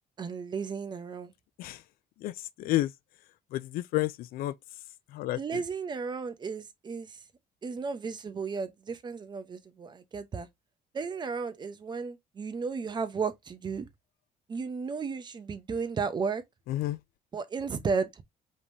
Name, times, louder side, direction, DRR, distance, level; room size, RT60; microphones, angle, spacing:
voice 1, 0.2-1.3 5.3-7.2 7.6-10.5 10.9-13.9 14.5-16.4 17.3-18.2, right 5 dB, 30° right, 0.8 m, -34 dB
voice 2, 2.6-2.9 3.5-4.5 5.1-5.4 16.7-17.0, left 16 dB, 70° left, 0.4 m, -30 dB
5.1 x 3.3 x 2.7 m
cardioid pair, 135°, 16 cm